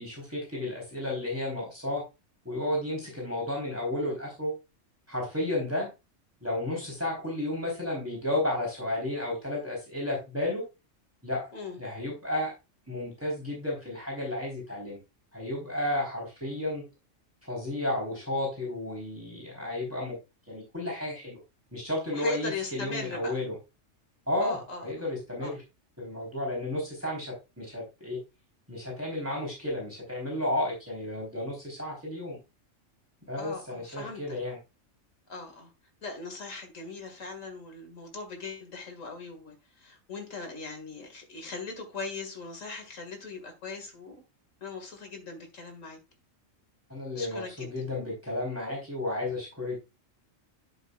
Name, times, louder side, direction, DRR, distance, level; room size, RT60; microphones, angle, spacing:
voice 1, 0.0-2.0 2.4-4.5 5.1-5.9 6.4-10.6 11.2-11.5 11.8-12.5 12.9-15.0 15.3-16.8 17.4-20.2 20.5-21.4 21.7-23.6 24.3-25.6 26.0-28.2 28.7-32.4 33.3-34.6 46.9-49.8, left 1 dB, 10° right, 3.9 m, -32 dB
voice 2, 22.1-23.4 24.4-24.9 25.4-25.6 33.4-34.4 35.3-35.7 36.0-44.2 44.6-46.0 47.2-47.7, left 4 dB, 90° left, 2.4 m, -39 dB
11.0 x 6.9 x 2.4 m
omnidirectional pair, 1.3 m